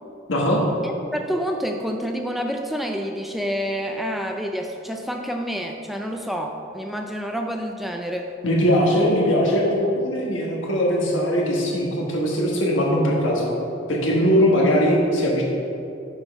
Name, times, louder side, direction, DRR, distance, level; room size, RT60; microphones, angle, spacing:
voice 1, 0.3-0.6 8.4-13.5 13.9-15.4, equal, 80° left, -2 dB, 1.4 m, -20 dB
voice 2, 0.8-8.3, equal, ahead, 3 dB, 0.3 m, -28 dB
6.3 x 5.2 x 5.1 m, 2.7 s
head